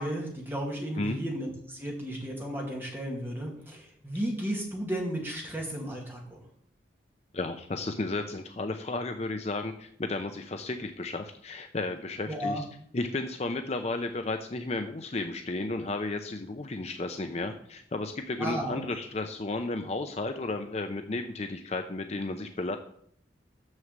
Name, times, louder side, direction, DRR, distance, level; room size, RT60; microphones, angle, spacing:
voice 1, 0.0-6.4 12.3-12.6 18.4-18.8, equal, 10° right, -2 dB, 2.1 m, -34 dB
voice 2, 7.3-12.7 12.9-22.8, left 2 dB, 35° left, 6 dB, 0.6 m, -33 dB
6.4 x 6.3 x 7.2 m, 0.66 s
head